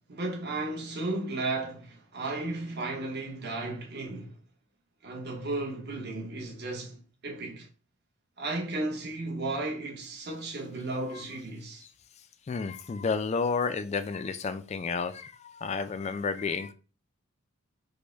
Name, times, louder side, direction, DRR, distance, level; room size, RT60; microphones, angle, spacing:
voice 1, 0.1-4.3 5.0-7.0 7.2-7.7 8.4-11.8, right 2 dB, 50° right, 1.1 m, -34 dB
voice 2, 12.5-16.7, left 5 dB, 30° left, 0.3 m, -31 dB
5.1 x 2.1 x 4.4 m
head